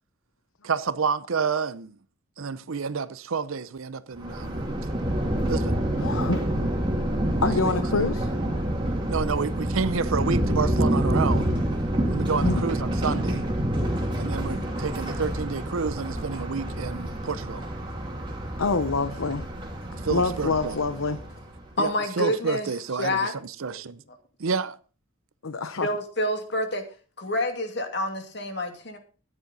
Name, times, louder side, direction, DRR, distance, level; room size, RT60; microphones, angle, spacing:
voice 1, 0.6-2.0 2.4-4.6 5.5-5.8 7.4-7.5 8.0-8.1 9.1-11.5 12.1-13.5 14.2-17.7 20.0-20.8 21.8-24.0 24.4-24.8, right 5 dB, 85° right, 0.7 m, -29 dB
Thunder, 4.2-21.6, right 1 dB, 25° right, 2.8 m, -27 dB
voice 2, 6.0-6.5 7.4-8.3 12.4-12.6 18.6-19.4 20.1-21.2 25.4-25.9, left 3 dB, 85° left, 0.9 m, -26 dB
voice 3, 21.8-22.7 23.0-23.3 23.7-23.8 25.8-26.8 27.2-29.0, left 1 dB, 55° left, 2.4 m, -28 dB
14.0 x 9.8 x 4.0 m
head